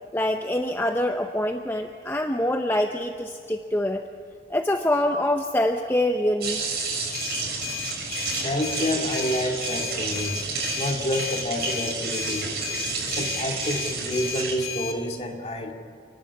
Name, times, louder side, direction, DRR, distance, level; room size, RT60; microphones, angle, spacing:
voice 1, 0.1-4.0 4.5-6.6, left 1 dB, 15° left, 5 dB, 0.6 m, -25 dB
sound 1, 6.4-14.5, right 4 dB, 65° right, 7.1 m, -30 dB
sound 2, 7.1-15.0, left 9 dB, 70° left, 2.0 m, -34 dB
voice 2, 8.3-10.4 10.8-12.5 13.0-15.7, left 1 dB, 35° left, 2 dB, 2.2 m, -28 dB
29.0 x 11.5 x 8.6 m, 2.3 s
head